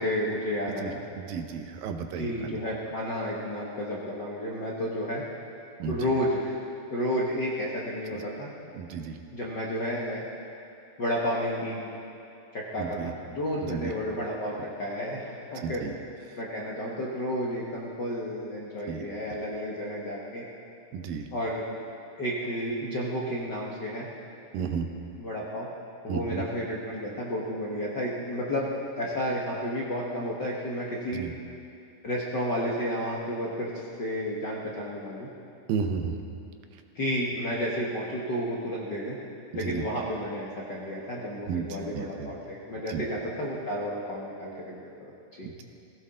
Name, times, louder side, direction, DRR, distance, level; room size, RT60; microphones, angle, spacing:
voice 1, 0.0-1.0 2.1-5.2 5.9-6.5 6.9-8.5 9.3-10.2 11.0-11.9 12.5-15.8 16.4-20.4 21.3-21.6 22.2-24.1 25.2-25.7 26.0-31.2 32.0-35.3 36.9-39.2 39.5-45.1 45.4-45.5, equal, 50° left, -5 dB, 1.3 m, -31 dB
voice 2, 0.8-2.6 5.8-6.1 8.7-9.2 12.8-13.1 13.6-13.9 15.6-15.9 16.3-16.4 18.9-19.1 20.9-21.3 24.5-24.9 26.1-26.4 31.1-31.3 35.7-36.2 39.5-39.8 41.5-41.7 41.9-42.4 42.9-43.0 45.4-45.6, right 6 dB, 85° right, 5 dB, 2.7 m, -33 dB
19.0 x 16.5 x 3.8 m, 2.6 s
omnidirectional pair, 4.0 m